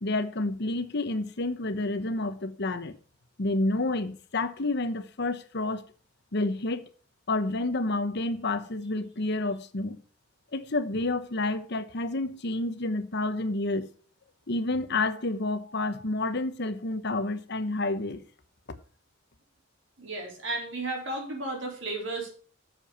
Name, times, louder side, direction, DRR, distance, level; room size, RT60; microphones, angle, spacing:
voice 1, 0.0-2.9 3.4-5.8 6.3-6.9 7.3-10.0 10.5-13.9 14.5-18.2, left 2 dB, 55° left, 1.0 m, -29 dB
voice 2, 20.0-22.3, right 2 dB, 65° right, 3.9 m, -33 dB
8.2 x 6.9 x 5.7 m
head